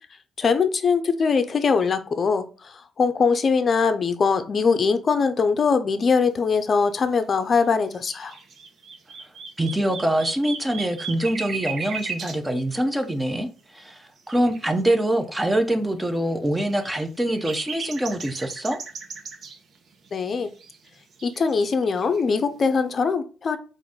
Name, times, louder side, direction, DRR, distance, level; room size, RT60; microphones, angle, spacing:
voice 1, 0.4-8.3 20.1-20.5 21.2-23.6, left 5 dB, 45° left, 0.5 m, -22 dB
sound 1, 7.6-7.7 7.9-12.4 14.3-14.7 15.5-15.6 15.9-16.0 16.5-19.6 20.0-20.9 21.1-22.2, right 5 dB, 60° right, 0.8 m, -36 dB
voice 2, 9.6-18.8, right 1 dB, 10° right, 0.6 m, -24 dB
3.9 x 2.5 x 3.6 m
cardioid pair, 90°, 0 cm